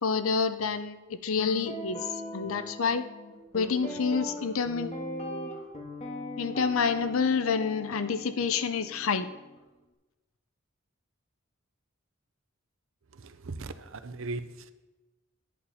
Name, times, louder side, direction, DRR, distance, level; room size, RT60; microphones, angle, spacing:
voice 1, 0.0-1.0 1.2-2.1 2.3-3.1 3.5-4.9 6.4-9.3, left 5 dB, 80° left, 11 dB, 0.6 m, -28 dB
Guitar, 1.4-9.6, left 1 dB, 30° left, 1.7 m, -39 dB
voice 2, 13.1-14.7, right 3 dB, 70° right, 11 dB, 0.6 m, -38 dB
11.0 x 8.7 x 4.2 m, 1.1 s
head